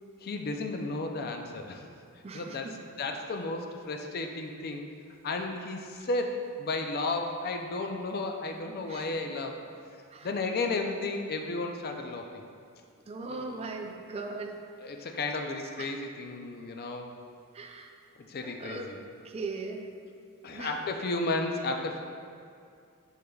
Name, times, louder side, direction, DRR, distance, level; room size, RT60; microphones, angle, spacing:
voice 1, 0.2-1.9 2.3-2.7 3.0-4.8 5.2-9.6 10.2-12.3 13.3-13.7 14.8-17.1 18.3-18.8 20.4-22.0, left 3 dB, 45° left, 4 dB, 0.5 m, -33 dB
voice 2, 2.2-2.7 5.9-6.1 8.9-9.1 10.1-10.3 13.1-14.6 15.8-15.9 17.5-17.9 18.4-18.9 19.2-19.8 20.5-20.8, right 3 dB, 30° right, 3 dB, 0.4 m, -39 dB
6.5 x 6.4 x 2.3 m, 2.3 s
head